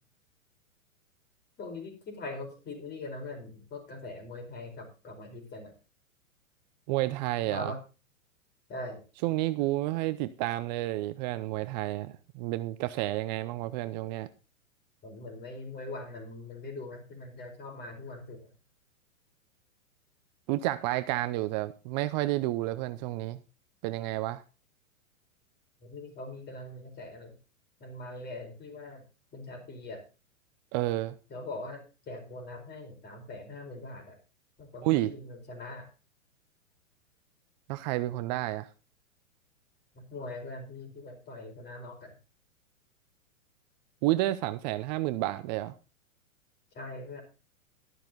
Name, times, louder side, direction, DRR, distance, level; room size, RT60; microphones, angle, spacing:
voice 1, 1.6-5.7 7.4-7.8 8.7-9.0 15.0-18.5 25.8-27.3 27.8-29.0 29.3-30.0 31.3-34.2 34.6-35.9 39.9-42.1 46.7-47.2, left 2 dB, 25° left, 4.7 m, -42 dB
voice 2, 6.9-7.7 9.2-14.3 20.5-23.4 23.8-24.4 30.7-31.1 34.8-35.1 37.7-38.7 44.0-45.7, right 17 dB, 30° right, 0.6 m, -30 dB
12.5 x 10.5 x 3.9 m
hypercardioid pair, 110°, 41 cm